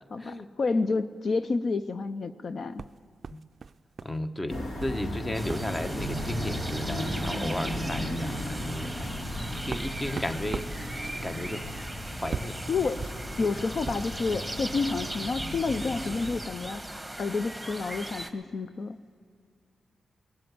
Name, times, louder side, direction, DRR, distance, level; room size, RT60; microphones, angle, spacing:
voice 1, 0.1-2.8 4.5-4.6 12.7-13.1 13.4-16.8 17.2-19.2, left 4 dB, 60° left, 11 dB, 0.5 m, -29 dB
sound 1, 2.8-4.2 4.4-5.0 5.5-5.7 6.1-6.3 7.2-7.3 7.6-7.8 8.3-14.2, right 5 dB, 55° right, 0.3 m, -41 dB
voice 2, 4.0-9.1 9.5-10.7 11.2-11.9 12.2-12.7, left 1 dB, 20° left, 9 dB, 1.0 m, -34 dB
sound 2, 4.5-16.4, equal, 80° left, 3.0 m, -35 dB
sound 3, 5.3-18.3, right 1 dB, 5° right, 1.6 m, -39 dB
20.5 x 7.7 x 9.2 m, 2.3 s
cardioid pair, 65°, 0 cm